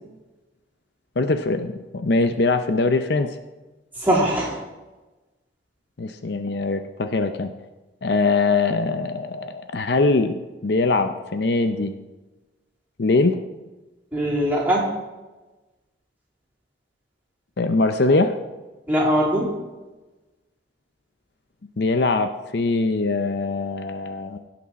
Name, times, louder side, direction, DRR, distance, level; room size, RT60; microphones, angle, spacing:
voice 1, 1.2-3.4 6.0-7.5 8.0-11.9 13.0-13.4 17.6-18.4 21.8-24.4, left 3 dB, 60° left, 8 dB, 0.6 m, -22 dB
voice 2, 3.9-4.6 14.1-14.9 18.9-19.5, equal, 10° right, -6 dB, 3.2 m, -21 dB
17.0 x 6.0 x 4.2 m, 1.1 s
head